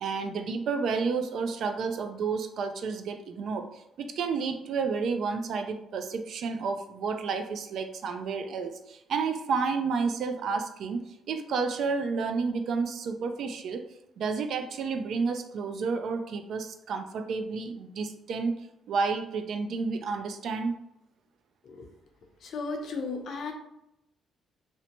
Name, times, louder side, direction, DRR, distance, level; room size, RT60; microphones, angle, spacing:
voice 1, 0.0-13.8 14.2-18.6 18.9-20.8, right 5 dB, 70° right, 7 dB, 0.3 m, -31 dB
voice 2, 22.4-23.5, left 4 dB, 65° left, 3 dB, 0.5 m, -35 dB
2.7 x 2.1 x 2.8 m, 0.83 s
cardioid pair, 90°, 0 cm